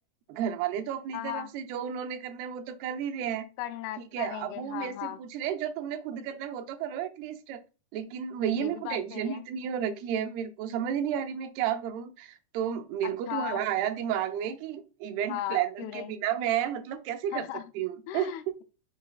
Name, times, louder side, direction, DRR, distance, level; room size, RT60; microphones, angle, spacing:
voice 1, 0.3-3.5 4.1-7.6 7.9-17.5 17.8-18.3, right 9 dB, 85° right, 2.6 m, -32 dB
voice 2, 1.1-1.5 3.6-5.2 8.5-9.4 13.0-13.6 15.3-16.2 17.3-17.6 18.1-18.6, left 12 dB, 80° left, 2.4 m, -37 dB
6.4 x 4.6 x 3.9 m
omnidirectional pair, 4.6 m